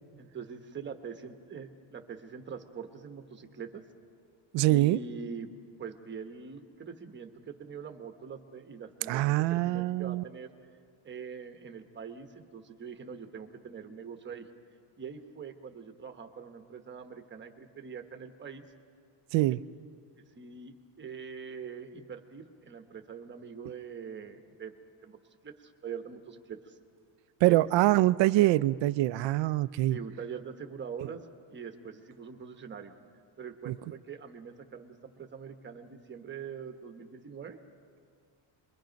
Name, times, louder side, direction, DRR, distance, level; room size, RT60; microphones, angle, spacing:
voice 1, 0.2-3.8 4.7-5.5 5.8-10.5 11.0-14.5 15.0-18.6 20.4-24.7 25.0-25.2 25.4-26.8 27.5-27.6 29.9-31.2 31.5-32.9 33.4-37.6, right 6 dB, 20° right, 1.1 m, -43 dB
voice 2, 4.5-5.0 9.1-10.2 19.3-19.6 27.4-30.0 33.7-33.8, right 17 dB, 65° right, 0.5 m, -24 dB
28.0 x 22.5 x 5.2 m
cardioid pair, 180°, 50 cm